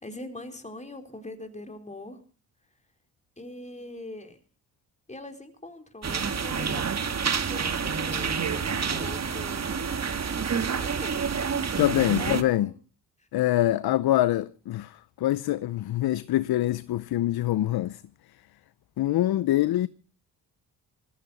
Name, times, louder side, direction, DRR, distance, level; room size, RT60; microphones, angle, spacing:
voice 1, 0.0-2.2 3.4-4.4 5.1-9.6 10.8-11.2 12.2-12.6 13.2-13.3, left 1 dB, 15° left, 3.9 m, -42 dB
sound 1, 6.0-12.4, right 6 dB, 40° right, 1.9 m, -28 dB
voice 2, 11.8-12.7 13.3-18.0 19.0-19.9, left 14 dB, 65° left, 0.7 m, -25 dB
20.5 x 15.0 x 4.2 m
supercardioid pair, 65°, 40 cm